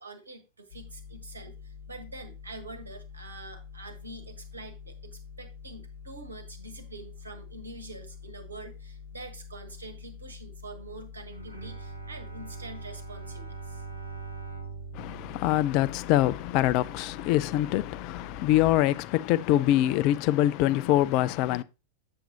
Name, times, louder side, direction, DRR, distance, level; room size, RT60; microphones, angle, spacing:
voice 1, 0.0-13.8, right 2 dB, 75° right, 1.3 m, -45 dB
sound 1, 0.7-18.8, left 5 dB, 65° left, 0.8 m, -46 dB
Bowed string instrument, 11.3-16.5, right 6 dB, 90° left, 1.2 m, -43 dB
voice 2, 14.9-21.6, left 14 dB, 45° left, 0.4 m, -24 dB
7.2 x 7.2 x 2.8 m
figure-of-eight pair, 90°, 0 cm